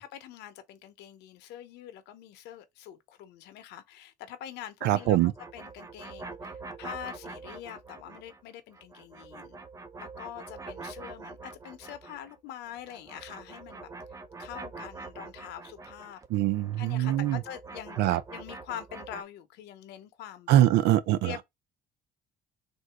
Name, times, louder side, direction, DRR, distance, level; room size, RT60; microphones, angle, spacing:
voice 1, 0.0-5.2 5.5-9.6 10.0-16.2 16.8-20.6 21.2-21.4, left 11 dB, 85° left, 0.8 m, -44 dB
voice 2, 4.8-5.3 16.3-17.4 18.0-18.2 20.5-21.3, right 13 dB, 85° right, 0.5 m, -23 dB
sound 1, 4.9-8.4 8.7-12.4 12.7-19.2, right 3 dB, 20° right, 0.6 m, -45 dB
3.8 x 2.6 x 4.5 m
cardioid pair, 110°, 17 cm